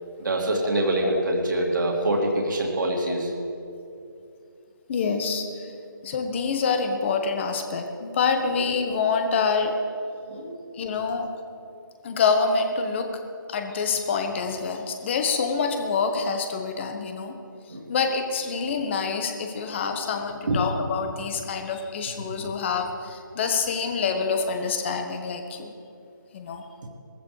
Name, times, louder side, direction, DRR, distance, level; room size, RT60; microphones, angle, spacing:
voice 1, 0.2-3.3 10.3-10.5 17.7-17.8 20.5-20.6, right 1 dB, 65° right, -1 dB, 2.5 m, -25 dB
voice 2, 0.7-1.2 3.1-3.2 4.9-5.7 6.0-9.8 10.7-11.3 12.0-13.2 13.5-17.4 17.9-25.7 26.3-26.6, left 5 dB, 35° left, 5 dB, 1.3 m, -26 dB
19.5 x 15.0 x 3.3 m, 2.6 s
figure-of-eight pair, 150°, 11 cm